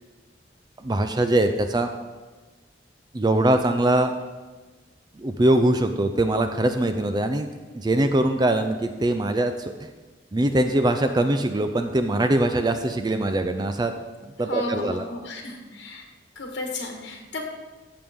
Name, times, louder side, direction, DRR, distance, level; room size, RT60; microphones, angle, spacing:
voice 1, 0.8-1.9 3.1-4.1 5.2-7.5 7.7-9.9 10.3-13.9 14.4-15.1, right 1 dB, 20° right, 7 dB, 0.4 m, -22 dB
voice 2, 14.5-16.1 16.3-17.4, left 2 dB, 65° left, 1 dB, 1.5 m, -33 dB
14.5 x 6.9 x 3.6 m, 1.3 s
head